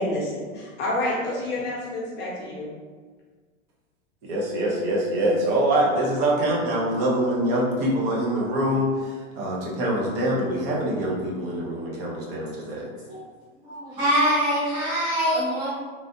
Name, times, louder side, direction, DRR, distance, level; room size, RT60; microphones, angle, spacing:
voice 1, 0.0-2.7, left 1 dB, 25° left, -6 dB, 0.8 m, -28 dB
voice 2, 4.3-12.9, right 1 dB, 45° right, -3 dB, 0.8 m, -24 dB
voice 3, 13.6-15.7, equal, 10° right, -11 dB, 0.6 m, -23 dB
3.3 x 2.4 x 2.7 m, 1.5 s
supercardioid pair, 145°, 39 cm